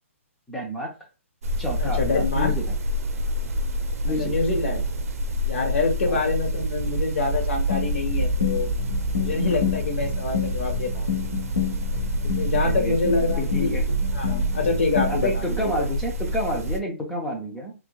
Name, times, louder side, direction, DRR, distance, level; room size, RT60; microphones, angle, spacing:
voice 1, 0.5-0.9 1.6-2.7 4.0-4.3 6.1-6.2 12.6-13.0 13.4-13.8 15.1-17.7, left 1 dB, 5° left, -1 dB, 0.4 m, -29 dB
sound 1, 1.4-16.8, equal, 85° right, 0.5 m, -27 dB
voice 2, 1.8-2.5 4.2-4.9 5.5-8.7 9.2-11.1 12.2-13.8 14.1-15.7, left 3 dB, 55° left, 2 dB, 1.1 m, -26 dB
sound 2, 7.7-15.4, left 8 dB, 75° left, 1.0 m, -30 dB
3.4 x 3.0 x 2.2 m, 0.33 s
hypercardioid pair, 175°, 8 cm